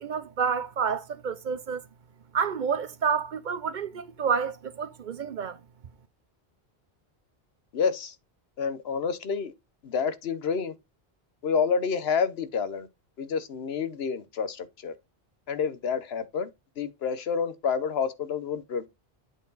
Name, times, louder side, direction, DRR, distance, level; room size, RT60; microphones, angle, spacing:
voice 1, 0.0-1.8 2.3-5.6, right 6 dB, 55° right, 0.7 m, -29 dB
voice 2, 7.7-8.1 8.6-9.5 9.8-10.7 11.4-12.9 13.2-14.9 15.5-16.5 16.8-18.9, left 6 dB, 85° left, 1.1 m, -28 dB
8.1 x 4.5 x 3.9 m
omnidirectional pair, 1.0 m